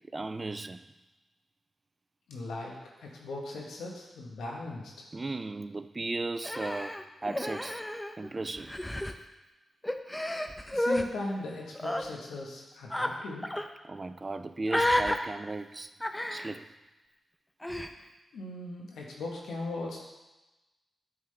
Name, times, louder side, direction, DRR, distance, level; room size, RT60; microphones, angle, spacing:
voice 1, 0.1-0.8 5.1-7.8 8.2-8.7 13.8-15.9 16.3-16.7, right 3 dB, 40° right, 0.3 m, -36 dB
voice 2, 2.3-4.9 10.7-13.5 18.3-20.0, left 2 dB, 85° left, 1.2 m, -38 dB
Human voice, 6.4-8.3 8.6-9.1 9.8-11.0 11.7-12.0 12.9-13.1 13.4-13.7 14.7-15.2 16.0-16.5 17.6-17.9, left 1 dB, 15° left, 0.6 m, -31 dB
9.7 x 3.7 x 3.3 m
supercardioid pair, 40°, 0 cm